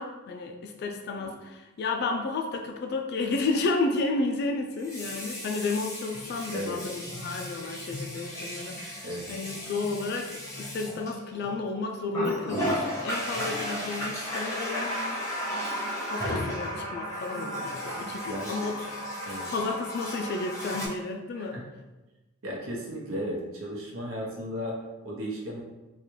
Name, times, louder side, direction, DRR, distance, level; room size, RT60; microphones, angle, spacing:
voice 1, 0.0-15.2 16.0-18.8 19.5-21.6, left 3 dB, 50° left, 3 dB, 0.3 m, -32 dB
Water tap faucet, 1.2-1.3 4.7-11.6 12.1-20.9, equal, 15° left, 0.7 m, -34 dB
voice 2, 18.2-18.6 19.2-19.5 21.3-21.7 22.4-24.8 25.0-25.6, equal, 80° right, -2 dB, 0.9 m, -35 dB
3.6 x 2.4 x 3.1 m, 1.1 s
head